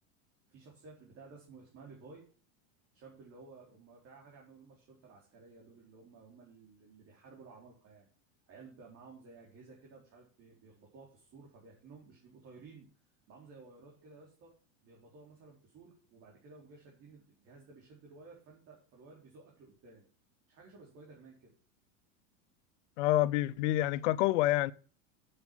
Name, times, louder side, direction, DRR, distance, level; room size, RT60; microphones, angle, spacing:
voice 1, 0.5-2.3 2.9-8.1 8.5-12.9 13.3-14.5 14.8-20.0 20.5-21.5, right 4 dB, 35° right, 4.2 m, -55 dB
voice 2, 23.0-24.7, left 15 dB, 65° left, 0.8 m, -27 dB
8.7 x 7.0 x 7.4 m
supercardioid pair, 130°, 40 cm